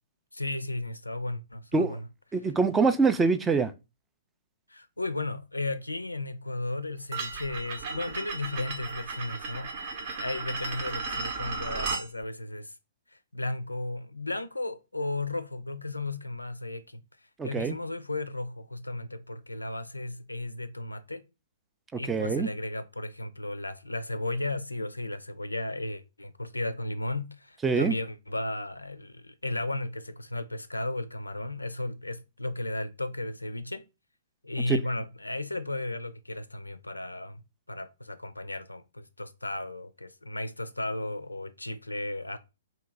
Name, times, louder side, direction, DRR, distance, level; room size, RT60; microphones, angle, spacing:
voice 1, 0.3-2.1 4.7-12.7 13.1-17.0 17.4-21.2 22.0-33.8 34.4-37.4 37.7-42.4, left 2 dB, 85° left, 0.4 m, -34 dB
voice 2, 2.3-3.7 17.4-17.8 21.9-22.5 27.6-27.9 34.7-34.8, right 4 dB, 10° right, 0.3 m, -24 dB
sound 1, 7.1-12.1, right 4 dB, 40° right, 0.7 m, -35 dB
2.9 x 2.7 x 3.7 m
figure-of-eight pair, 120°, 0 cm